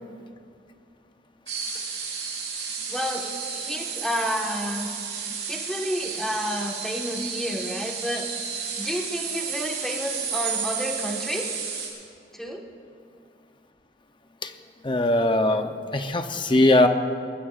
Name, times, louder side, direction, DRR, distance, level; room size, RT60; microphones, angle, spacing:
sound 1, 1.5-11.9, right 6 dB, 65° right, 4.5 m, -32 dB
voice 1, 2.9-4.9 5.5-8.2 8.8-11.5 12.3-12.6, equal, ahead, -1 dB, 1.5 m, -30 dB
voice 2, 14.8-16.9, left 1 dB, 25° left, 6 dB, 0.8 m, -20 dB
23.0 x 20.0 x 2.5 m, 2.4 s
head